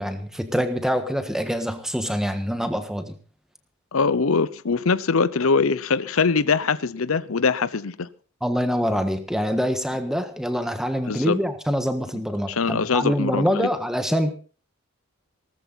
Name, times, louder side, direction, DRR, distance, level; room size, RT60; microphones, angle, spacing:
voice 1, 0.0-3.1 8.4-14.3, equal, ahead, 8 dB, 1.5 m, -25 dB
voice 2, 3.9-8.1 11.1-11.4 12.5-13.7, left 4 dB, 80° left, 16 dB, 0.8 m, -22 dB
18.5 x 14.0 x 4.1 m, 0.38 s
head